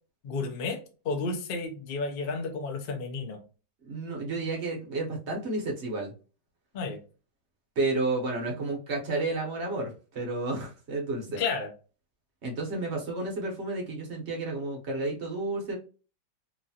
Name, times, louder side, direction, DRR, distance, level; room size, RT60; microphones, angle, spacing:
voice 1, 0.2-0.8 1.0-3.4 6.7-7.0 11.4-11.7, left 4 dB, 85° left, 0.5 m, -32 dB
voice 2, 3.8-6.1 7.8-11.4 12.4-15.8, right 2 dB, 50° right, 0.9 m, -31 dB
3.0 x 2.4 x 2.7 m
omnidirectional pair, 1.8 m